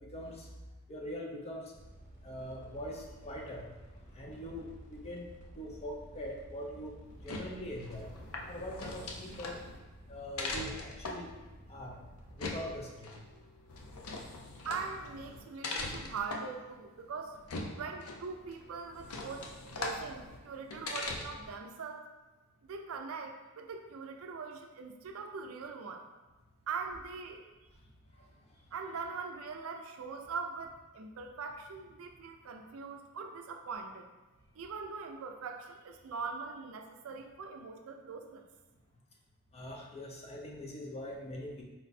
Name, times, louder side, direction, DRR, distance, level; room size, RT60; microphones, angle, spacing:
voice 1, 0.1-0.5 0.9-1.6 2.2-3.7 4.1-5.3 5.6-6.9 7.2-8.1 8.5-9.6 10.1-11.3 11.7-12.0 12.4-13.1 17.7-17.8 28.1-28.2 39.5-41.6, equal, 30° left, -1 dB, 0.6 m, -42 dB
sound 1, 1.7-12.9, right 1 dB, 40° right, 1.0 m, -53 dB
sound 2, 7.1-21.6, left 2 dB, 90° left, 0.6 m, -42 dB
voice 2, 14.6-17.4 17.7-19.5 19.7-22.1 22.7-26.1 26.7-27.4 28.7-34.1 34.6-38.5, right 5 dB, 70° right, 5 dB, 0.4 m, -42 dB
4.5 x 2.1 x 4.1 m, 1.1 s
head